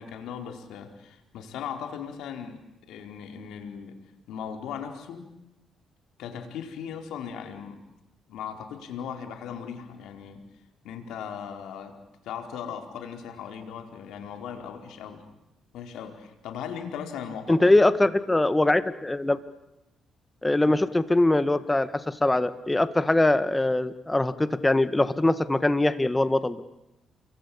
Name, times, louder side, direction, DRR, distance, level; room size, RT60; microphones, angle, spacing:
voice 1, 0.0-4.0 4.3-5.3 6.2-7.8 8.3-10.4 10.8-12.0 12.2-15.2 15.7-17.7 20.6-20.7, left 7 dB, 85° left, 5 dB, 4.4 m, -38 dB
voice 2, 17.5-19.4 20.4-26.6, left 2 dB, 15° left, 13 dB, 1.6 m, -22 dB
29.5 x 23.5 x 8.7 m, 0.91 s
cardioid pair, 90°, 0 cm